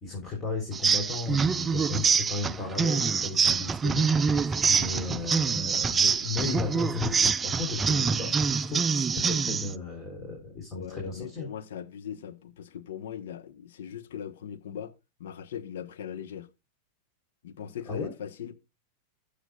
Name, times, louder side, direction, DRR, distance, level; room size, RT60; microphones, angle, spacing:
voice 1, 0.0-11.5 17.9-18.1, left 3 dB, 20° left, 3.6 m, -35 dB
sound 1, 0.7-9.7, right 5 dB, 20° right, 0.4 m, -25 dB
voice 2, 10.7-14.9 15.2-16.5 17.4-18.5, left 9 dB, 75° left, 1.0 m, -39 dB
15.5 x 6.9 x 2.3 m
hypercardioid pair, 115°, 0 cm